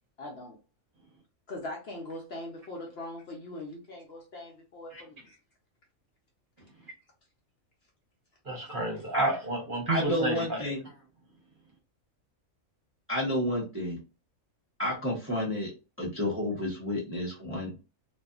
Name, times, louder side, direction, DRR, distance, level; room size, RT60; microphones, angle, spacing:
voice 1, 0.2-0.6 1.5-5.4, left 1 dB, 60° left, 0 dB, 0.7 m, -41 dB
voice 2, 8.4-10.6, right 2 dB, 45° right, -1 dB, 0.9 m, -30 dB
voice 3, 9.9-10.8 13.1-14.0 14.8-15.7 16.0-17.7, left 1 dB, 15° right, -4 dB, 0.6 m, -30 dB
2.6 x 2.3 x 2.3 m, 0.31 s
omnidirectional pair, 1.4 m